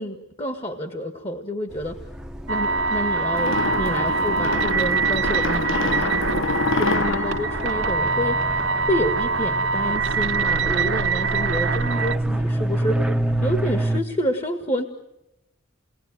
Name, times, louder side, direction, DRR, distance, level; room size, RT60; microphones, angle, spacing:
voice 1, 0.0-2.0 2.5-6.5 6.8-8.5 8.8-13.0 13.4-14.8, equal, 30° left, 6 dB, 1.7 m, -28 dB
sound 1, 1.7-14.0, right 1 dB, 5° right, 1.0 m, -29 dB
sound 2, 2.5-12.1, right 5 dB, 70° right, 1.5 m, -24 dB
sound 3, 3.3-8.7, left 3 dB, 70° left, 1.0 m, -27 dB
29.5 x 21.0 x 9.2 m, 0.95 s
head